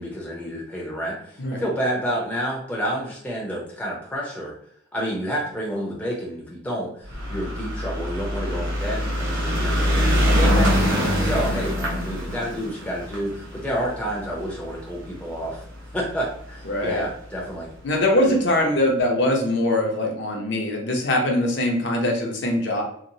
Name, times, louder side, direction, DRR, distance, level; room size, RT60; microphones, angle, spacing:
voice 1, 0.0-4.5 4.9-10.9 11.2-15.7 15.9-17.7 18.2-18.3, equal, 5° left, -3 dB, 0.5 m, -29 dB
sound 1, 7.1-15.6 16.4-16.5 16.7-16.8 17.0-17.1, equal, 70° right, 0.8 m, -23 dB
voice 2, 10.9-11.2 16.7-17.0 17.8-22.8, left 1 dB, 55° left, 1 dB, 0.5 m, -22 dB
2.9 x 2.0 x 2.6 m, 0.67 s
head